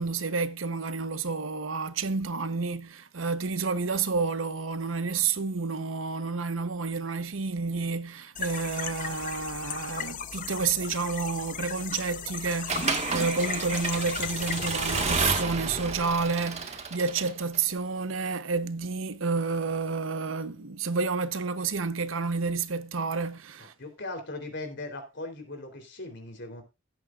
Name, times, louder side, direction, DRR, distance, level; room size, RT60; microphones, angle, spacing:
voice 1, 0.0-23.7, right 4 dB, 85° right, 0.9 m, -30 dB
sound 1, 8.3-15.4, left 8 dB, 40° left, 0.7 m, -36 dB
Accelerating revving vroom / Mechanisms, 12.7-17.6, right 4 dB, 35° right, 1.6 m, -31 dB
voice 2, 23.6-26.6, left 2 dB, 60° left, 3.4 m, -39 dB
17.0 x 8.5 x 2.4 m
head